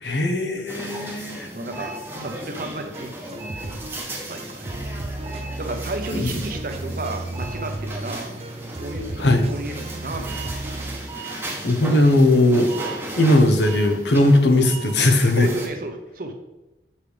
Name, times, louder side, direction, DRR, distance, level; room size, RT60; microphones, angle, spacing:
voice 1, 0.0-1.5 6.1-6.3 9.2-9.5 11.3-12.7 13.2-15.5, left 1 dB, 75° left, 4 dB, 0.9 m, -18 dB
sound 1, 0.7-15.7, right 1 dB, 10° right, 0.9 m, -35 dB
voice 2, 1.5-3.9 4.3-4.7 5.6-8.3 8.7-10.6 13.0-13.1 15.3-16.3, right 2 dB, 50° right, 4 dB, 0.8 m, -33 dB
sound 2, 2.9-11.0, right 2 dB, 35° right, 0.5 m, -34 dB
8.1 x 5.6 x 3.4 m, 1.0 s
head